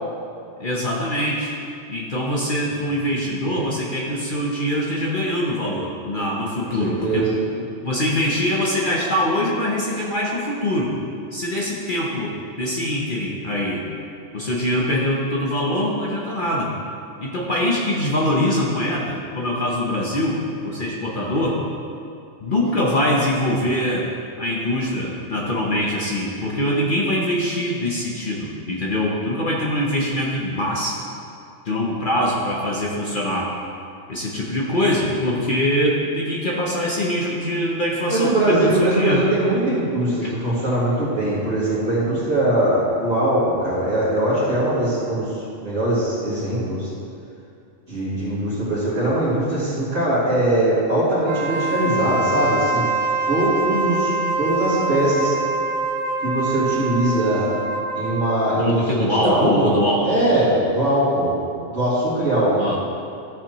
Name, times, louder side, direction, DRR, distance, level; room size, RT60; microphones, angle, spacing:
voice 1, 0.6-1.5 1.9-7.3 7.6-11.0 11.3-13.9 14.3-16.7 17.2-20.4 20.6-21.6 22.4-24.1 24.4-31.0 31.6-33.5 34.1-39.2 40.2-40.3 58.6-60.2 62.6-62.8, left 1 dB, 45° left, -3 dB, 1.0 m, -23 dB
voice 2, 6.8-7.4 38.1-46.9 47.9-52.8 53.3-54.1 54.4-55.3 56.2-57.5 57.9-59.8 60.0-61.3 61.7-62.8, right 1 dB, 60° right, -12 dB, 2.7 m, -21 dB
Wind instrument woodwind instrument, 51.2-58.7, right 2 dB, 80° right, 1.0 m, -25 dB
13.0 x 7.2 x 3.0 m, 2.5 s
omnidirectional pair, 1.3 m